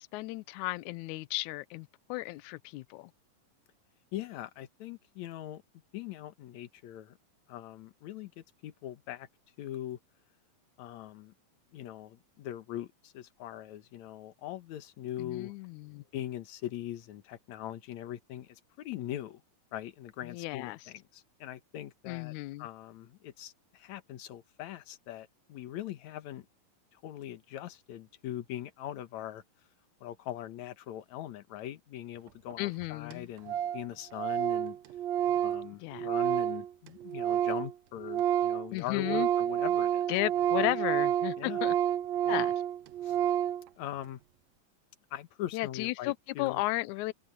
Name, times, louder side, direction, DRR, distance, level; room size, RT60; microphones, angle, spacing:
voice 1, 0.0-3.1 15.2-16.0 20.3-20.8 22.1-22.7 32.6-33.3 35.8-36.1 38.7-39.3 40.1-41.7 42.3-42.5 45.5-47.1, left 19 dB, 85° left, 1.7 m, -34 dB
voice 2, 4.1-5.6 5.9-7.2 7.5-9.3 9.6-10.0 10.8-11.3 11.7-15.5 15.9-19.4 19.7-22.3 22.6-26.5 26.9-29.4 30.0-34.8 35.4-40.0 40.6-40.7 41.4-41.6 42.3-42.5 43.0-43.2 43.8-44.2 45.1-46.6, left 12 dB, 65° left, 2.2 m, -41 dB
Organ, 32.5-32.6 32.8-32.9 33.1-33.2 33.5-33.8 34.1-37.7 38.0-43.6, right 10 dB, 85° right, 1.5 m, -29 dB
omnidirectional pair, 4.1 m